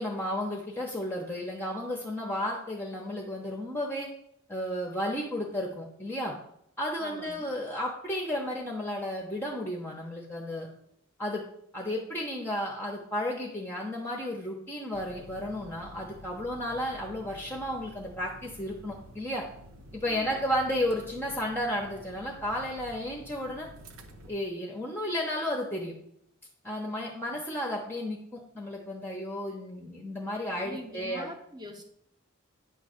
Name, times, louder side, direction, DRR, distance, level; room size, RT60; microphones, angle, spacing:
voice 1, 0.0-4.1 4.5-6.3 6.8-10.7 11.2-11.4 11.7-19.4 19.9-23.7 24.3-25.9 26.6-31.3, left 1 dB, 10° left, -2 dB, 0.9 m, -33 dB
voice 2, 7.0-7.5 20.0-20.6 30.6-31.8, equal, 20° right, 4 dB, 1.0 m, -43 dB
sound 1, 14.9-24.3, right 1 dB, 80° right, 0.8 m, -50 dB
9.6 x 3.2 x 6.5 m, 0.73 s
head